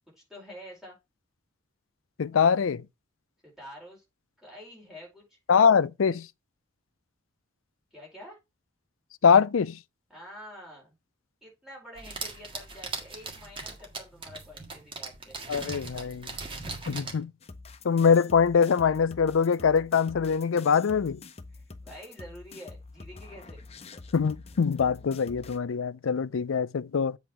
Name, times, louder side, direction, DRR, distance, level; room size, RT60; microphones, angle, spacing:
voice 1, 0.2-1.0 3.4-4.0 4.4-5.4 7.9-8.4 10.1-10.9 11.4-15.4 21.5-23.6, equal, ahead, 4.6 m, -47 dB
voice 2, 2.2-2.8 5.5-6.3 9.2-9.8 15.5-16.3 16.9-17.3 17.8-21.2 24.1-27.2, left 6 dB, 90° left, 0.5 m, -23 dB
sound 1, 12.0-17.2, right 3 dB, 25° right, 1.7 m, -39 dB
sound 2, 17.4-25.6, left 3 dB, 30° left, 0.6 m, -46 dB
8.0 x 3.8 x 5.9 m
head